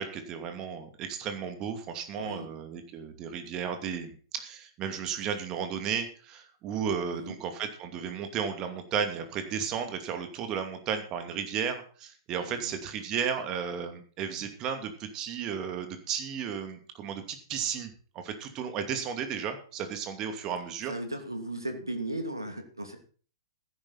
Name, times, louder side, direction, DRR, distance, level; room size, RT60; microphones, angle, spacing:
voice 1, 0.0-20.9, right 7 dB, 30° right, 7 dB, 2.6 m, -34 dB
voice 2, 2.2-2.5 7.1-7.3 12.4-12.7 20.9-23.0, right 1 dB, 85° right, 5 dB, 2.6 m, -36 dB
15.5 x 10.5 x 4.2 m, 0.41 s
figure-of-eight pair, 110°, 2 cm